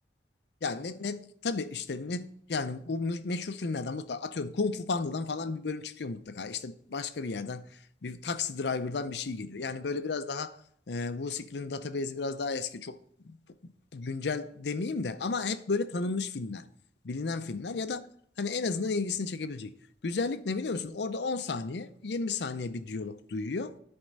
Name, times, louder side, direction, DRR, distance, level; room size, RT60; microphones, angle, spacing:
voice 1, 0.6-7.7 8.0-10.6 10.9-13.0 13.3-16.7 17.0-18.0 18.4-19.7 20.0-23.8, left 4 dB, 75° left, 0.6 m, -33 dB
10.5 x 4.4 x 5.2 m
head